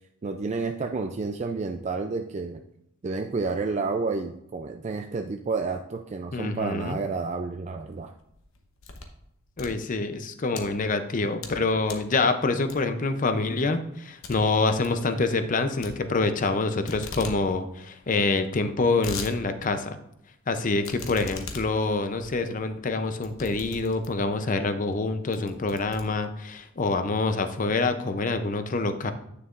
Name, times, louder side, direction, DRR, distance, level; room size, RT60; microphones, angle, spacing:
voice 1, 0.2-2.6 3.0-8.1, right 4 dB, 35° right, 5 dB, 0.3 m, -30 dB
voice 2, 6.3-7.0 9.6-20.0 20.5-29.1, left 3 dB, 40° left, 9 dB, 0.6 m, -26 dB
sound 1, 8.2-9.2 9.5-10.6 11.1-11.6 11.9-12.1 12.7-13.1 13.4-13.5 13.8-13.9 14.2-14.4 14.7-15.0 15.8-16.6 16.9-17.4 17.7-17.8 18.0-18.1 18.6-19.3 19.8-19.9 20.8-24.3 24.9-25.0 25.3-26.6, left 4 dB, 75° left, 0.9 m, -40 dB
9.2 x 6.6 x 2.5 m, 0.78 s
head